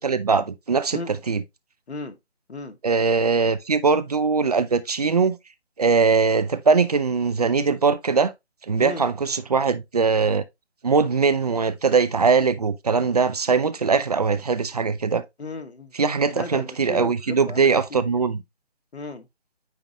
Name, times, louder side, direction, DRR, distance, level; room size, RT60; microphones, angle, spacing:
voice 1, 0.0-1.0 1.3-1.4 2.8-5.4 5.8-8.3 8.7-10.4 10.8-15.2 16.0-18.4, right 5 dB, 35° right, 0.6 m, -21 dB
voice 2, 1.9-2.2 2.5-2.8 8.8-9.1 15.4-15.9 16.3-18.2 18.9-19.3, left 3 dB, 75° left, 1.5 m, -35 dB
9.1 x 3.7 x 3.0 m
figure-of-eight pair, 155°, 33 cm